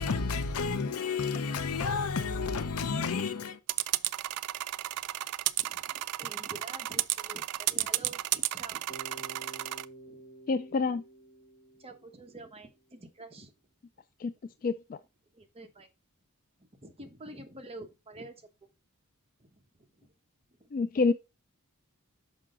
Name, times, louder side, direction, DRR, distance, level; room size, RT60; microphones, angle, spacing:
voice 1, 0.0-3.6, left 5 dB, 75° left, 0.7 m, -31 dB
sound 1, 3.7-9.8, right 15 dB, 90° right, 0.4 m, -32 dB
voice 2, 5.6-8.9 9.1-9.5 10.1-10.2 11.8-13.5 15.3-15.9 16.8-18.5 19.4-20.1 20.6-20.7, right 2 dB, 25° right, 1.0 m, -48 dB
Bass guitar, 8.9-12.8, right 2 dB, 20° left, 3.0 m, -50 dB
voice 3, 10.5-11.0 14.2-14.3 14.6-15.0 20.7-21.1, left 4 dB, 40° left, 0.3 m, -27 dB
6.1 x 5.6 x 3.7 m
head